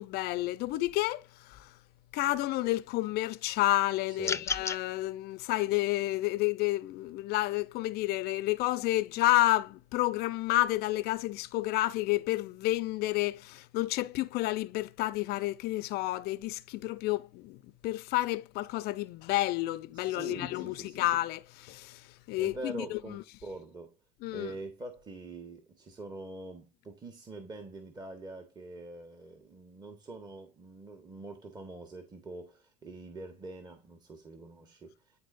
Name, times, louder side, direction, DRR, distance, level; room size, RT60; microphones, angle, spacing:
voice 1, 0.0-1.7 2.1-23.2 24.2-24.5, left 17 dB, 55° left, 0.7 m, -30 dB
voice 2, 4.1-4.5 19.9-21.0 22.4-23.9 24.3-34.9, right 2 dB, 20° right, 1.6 m, -44 dB
sound 1, 4.2-4.8, left 5 dB, 15° left, 0.5 m, -31 dB
11.0 x 4.2 x 2.6 m
supercardioid pair, 100°, 20 cm